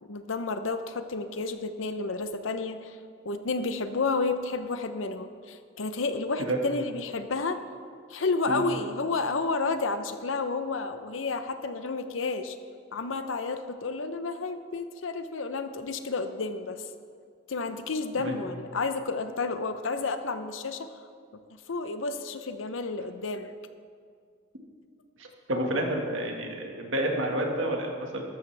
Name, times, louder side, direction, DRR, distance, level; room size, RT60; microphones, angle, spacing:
voice 1, 0.0-3.0 3.2-7.6 8.1-12.6 12.9-16.8 17.5-20.9 21.5-23.5, left 3 dB, 90° left, 9 dB, 0.7 m, -31 dB
voice 2, 25.2-28.2, right 1 dB, 85° right, 1 dB, 1.8 m, -29 dB
13.5 x 12.5 x 3.4 m, 2.2 s
head